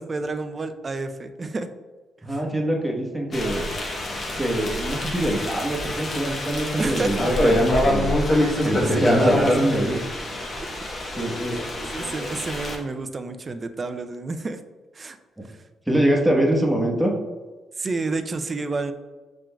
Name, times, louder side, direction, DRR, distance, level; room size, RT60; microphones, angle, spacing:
voice 1, 0.0-1.7 2.3-2.4 6.8-7.2 8.4-9.5 9.9-10.0 11.9-14.6 14.9-15.2 15.4-15.6 17.8-18.9, right 3 dB, 35° right, 8 dB, 0.4 m, -30 dB
voice 2, 2.2-3.7 4.4-8.1 8.6-9.9 11.2-11.6 15.9-17.1, right 1 dB, 5° right, -2 dB, 1.0 m, -24 dB
sound 1, 3.3-12.8, left 1 dB, 40° left, 0.9 m, -25 dB
6.0 x 3.7 x 2.2 m, 1.3 s
cardioid pair, 90°, 0 cm